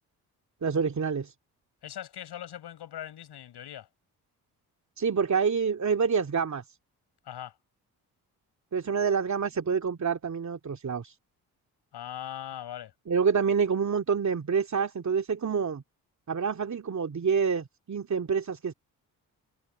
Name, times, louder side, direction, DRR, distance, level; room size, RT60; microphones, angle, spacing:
voice 1, 0.6-1.3 5.0-6.8 8.7-11.2 13.1-15.8 16.3-18.7, right 6 dB, 45° right, 2.5 m, -27 dB
voice 2, 1.8-3.9 7.2-7.5 11.9-12.9, left 11 dB, 70° left, 7.3 m, -40 dB
supercardioid pair, 50°, 40 cm